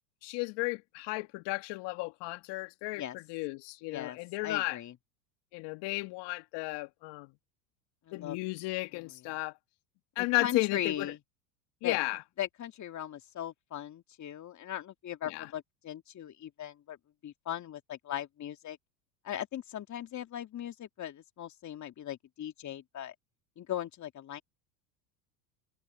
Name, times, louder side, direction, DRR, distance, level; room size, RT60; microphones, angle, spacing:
voice 1, 0.2-4.8 5.5-7.3 8.1-9.5 10.2-11.1 11.8-12.2 15.2-15.5, left 24 dB, 55° left, 2.0 m, -34 dB
voice 2, 3.9-4.9 8.1-8.4 8.9-9.2 10.2-11.2 11.8-12.0 12.4-17.0 17.2-18.8 19.2-23.1 23.6-24.4, left 11 dB, 35° left, 2.9 m, -39 dB
hypercardioid pair, 90°, 49 cm